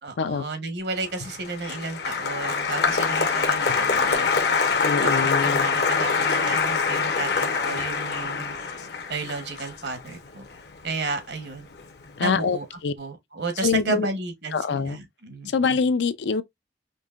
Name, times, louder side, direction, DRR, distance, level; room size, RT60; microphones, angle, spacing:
voice 1, 0.0-4.3 5.0-8.5 9.1-10.5 10.8-11.7 12.2-12.6 13.0-15.5, right 3 dB, 75° right, 1.1 m, -32 dB
Applause, 1.1-11.5 11.7-12.3, left 5 dB, 65° left, 0.8 m, -25 dB
voice 2, 4.8-5.7 12.2-12.9 13.6-14.1 14.5-15.0 15.5-16.4, left 5 dB, 80° left, 0.4 m, -24 dB
5.3 x 2.7 x 2.4 m
head